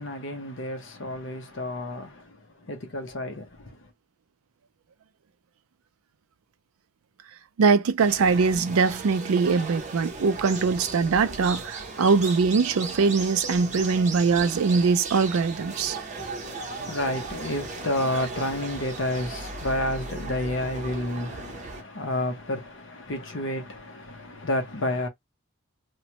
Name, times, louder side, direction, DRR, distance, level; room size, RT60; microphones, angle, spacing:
voice 1, 0.0-3.9 16.4-25.1, left 1 dB, 55° left, 0.8 m, -30 dB
voice 2, 7.6-16.0, right 5 dB, 75° right, 0.4 m, -22 dB
sound 1, 8.0-21.8, right 3 dB, 35° right, 0.6 m, -36 dB
3.0 x 2.1 x 2.8 m
head